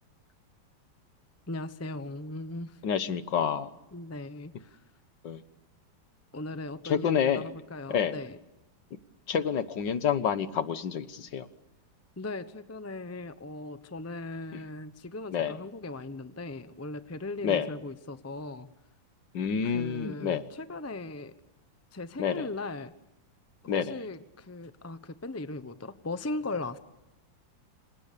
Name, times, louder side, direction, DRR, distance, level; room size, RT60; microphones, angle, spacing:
voice 1, 1.5-2.8 3.9-4.8 6.3-8.4 12.2-18.7 19.6-21.3 21.9-22.9 23.6-26.8, left 2 dB, 15° left, 11 dB, 0.5 m, -38 dB
voice 2, 2.8-3.7 5.2-5.4 6.9-7.5 7.9-8.2 9.3-11.5 15.3-15.6 17.4-17.7 19.3-20.4 22.2-22.5 23.7-23.9, left 7 dB, 65° left, 12 dB, 1.8 m, -28 dB
28.0 x 27.0 x 6.8 m, 0.98 s
omnidirectional pair, 2.1 m